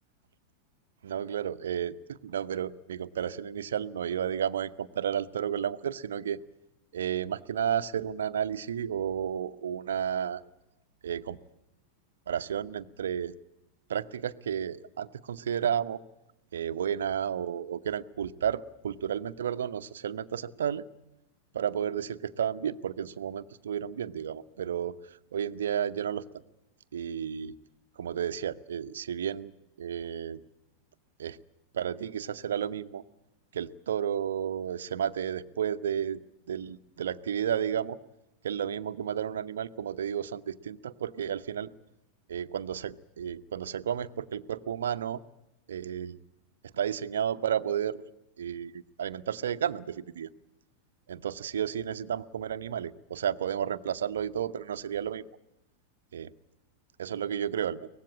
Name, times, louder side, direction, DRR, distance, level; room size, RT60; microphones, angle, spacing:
voice 1, 1.0-6.4 6.9-10.4 11.0-11.4 12.3-13.3 13.9-16.0 16.5-20.8 21.5-26.2 26.9-27.5 28.0-29.5 29.8-30.4 31.2-31.4 31.7-33.0 33.5-36.2 36.5-38.0 38.4-41.7 42.3-45.2 45.7-46.2 46.7-48.0 48.4-50.3 51.1-55.3 56.1-56.3 57.0-57.9, right 9 dB, 65° right, 13 dB, 0.8 m, -32 dB
23.5 x 19.0 x 8.6 m, 0.90 s
figure-of-eight pair, 90°, 0 cm